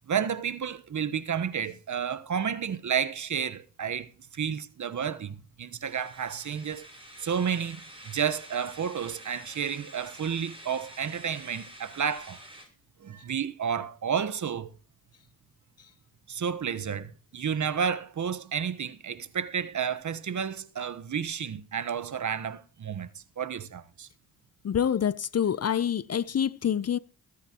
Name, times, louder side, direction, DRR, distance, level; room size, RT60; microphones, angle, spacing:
voice 1, 0.1-6.9 7.2-12.4 13.0-14.7 16.3-24.1, right 7 dB, 45° right, 1.2 m, -31 dB
sound 1, 5.8-12.7, right 1 dB, 15° right, 7.6 m, -48 dB
voice 2, 24.6-27.0, left 8 dB, 40° left, 0.7 m, -26 dB
21.5 x 10.0 x 3.0 m
supercardioid pair, 50°, 40 cm